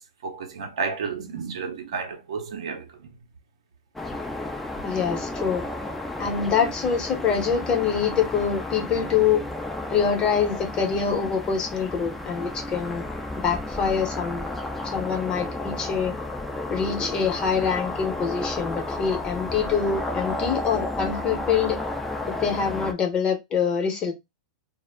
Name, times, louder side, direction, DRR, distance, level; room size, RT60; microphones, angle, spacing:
voice 1, 0.2-3.1, right 5 dB, 75° right, 0.6 m, -32 dB
sound 1, 4.0-22.9, left 2 dB, 5° left, 0.4 m, -32 dB
voice 2, 4.8-5.6 6.2-9.4 9.9-13.0 13.4-14.5 14.8-16.1 16.7-21.8 22.3-24.1, left 6 dB, 30° left, 0.8 m, -25 dB
2.0 x 2.0 x 3.2 m
hypercardioid pair, 120°, 3 cm